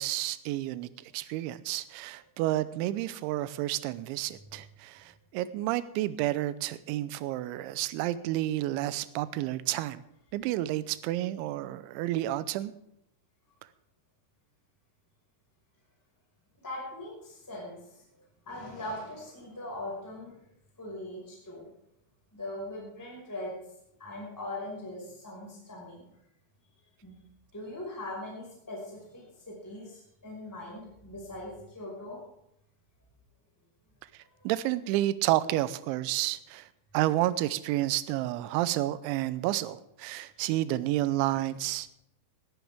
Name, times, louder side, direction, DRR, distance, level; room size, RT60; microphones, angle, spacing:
voice 1, 0.0-10.0 10.3-12.7 34.4-36.7 36.9-41.9, right 15 dB, 80° right, 15 dB, 2.9 m, -30 dB
voice 2, 16.6-18.0 18.4-20.3 20.8-21.6 22.3-23.5 24.0-26.1 27.0-27.2 27.5-32.2, left 1 dB, 5° left, -3 dB, 4.7 m, -40 dB
20.0 x 12.5 x 3.5 m, 0.77 s
omnidirectional pair, 5.6 m